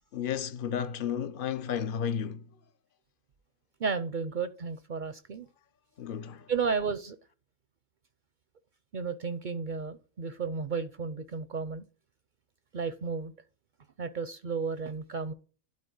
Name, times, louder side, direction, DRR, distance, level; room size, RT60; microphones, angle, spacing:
voice 1, 0.1-2.5 6.0-6.5, left 8 dB, 65° left, 0.5 m, -33 dB
voice 2, 3.8-5.5 6.5-7.2 8.9-11.8 12.7-13.3 14.0-15.3, right 5 dB, 55° right, 0.5 m, -33 dB
12.0 x 4.3 x 3.8 m
omnidirectional pair, 1.5 m